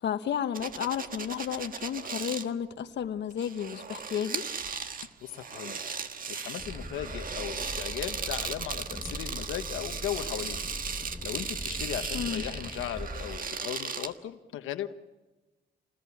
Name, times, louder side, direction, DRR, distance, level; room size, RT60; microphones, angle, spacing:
voice 1, 0.0-4.4 12.1-12.4, left 9 dB, 60° left, 8 dB, 1.2 m, -32 dB
sound 1, 0.5-2.5 3.3-14.1, right 5 dB, 45° right, 1.5 m, -37 dB
voice 2, 5.2-5.8 6.3-10.7 11.2-14.9, left 12 dB, 85° left, 8 dB, 1.2 m, -37 dB
sound 2, 6.6-13.4, equal, 5° left, 1.2 m, -41 dB
28.5 x 19.5 x 7.2 m, 1.1 s
cardioid pair, 90°, 20 cm